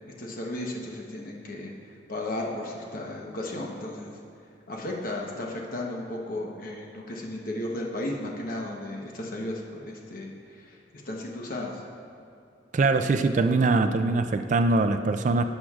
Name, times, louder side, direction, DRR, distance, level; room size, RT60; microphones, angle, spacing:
voice 1, 0.2-1.7 2.1-4.2 4.7-10.8 11.0-11.8, left 1 dB, 55° left, -1 dB, 1.0 m, -34 dB
voice 2, 12.7-15.4, right 3 dB, 45° right, 8 dB, 0.3 m, -22 dB
16.5 x 6.4 x 2.4 m, 2.7 s
head